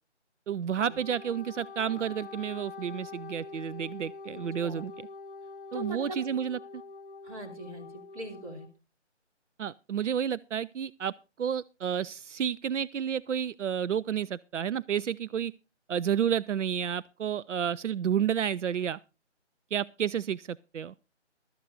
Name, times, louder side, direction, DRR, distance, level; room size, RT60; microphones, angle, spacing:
voice 1, 0.5-4.9 5.7-6.8 9.6-11.1 11.4-15.5 15.9-19.0 19.7-20.9, right 8 dB, 85° right, 0.5 m, -31 dB
Wind instrument woodwind instrument, 0.6-8.7, left 4 dB, 50° left, 1.0 m, -45 dB
voice 2, 4.3-4.9 5.7-6.2 7.2-7.9 8.1-8.7, equal, 30° right, 3.1 m, -41 dB
17.0 x 12.5 x 2.5 m
figure-of-eight pair, 160°, 36 cm